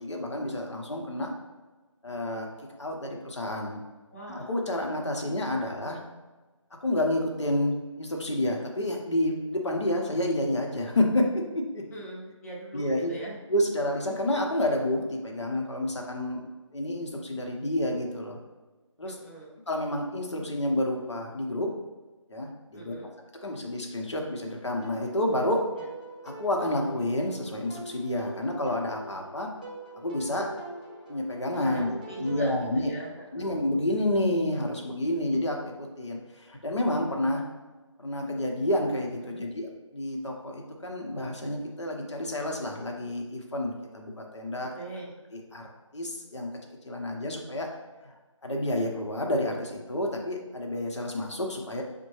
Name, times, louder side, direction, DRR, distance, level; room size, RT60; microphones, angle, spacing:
voice 1, 0.0-1.3 2.0-2.5 2.8-3.8 4.3-6.0 6.8-7.7 8.0-11.8 12.7-13.1 13.5-16.4 16.7-18.4 19.0-19.2 19.7-21.7 22.3-22.9 23.4-25.6 26.2-29.5 30.0-30.5 31.1-32.9 33.3-37.4 38.0-44.7 45.3-46.5 46.8-47.7 48.0-48.1 48.4-51.8, left 1 dB, 60° left, 1 dB, 0.9 m, -29 dB
voice 2, 4.1-4.5 11.9-13.4 19.0-19.5 22.7-23.1 31.6-33.6 39.2-39.5 44.7-45.1, right 2 dB, 30° left, -4 dB, 0.9 m, -41 dB
sound 1, 24.8-32.5, right 2 dB, 15° right, 0.4 m, -44 dB
5.9 x 2.2 x 3.1 m, 1.3 s
figure-of-eight pair, 165°, 16 cm